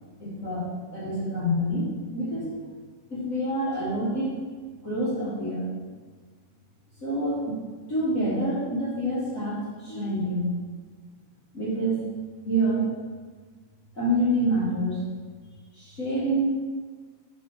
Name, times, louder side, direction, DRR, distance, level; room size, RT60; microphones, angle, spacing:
voice 1, 0.2-2.6 3.1-4.4 4.8-5.6 7.0-7.5 7.9-10.5 11.5-12.0 12.4-12.9 13.9-15.0 15.7-16.5, right 1 dB, 50° left, -11 dB, 0.9 m, -27 dB
4.8 x 4.5 x 5.5 m, 1.5 s
omnidirectional pair, 3.8 m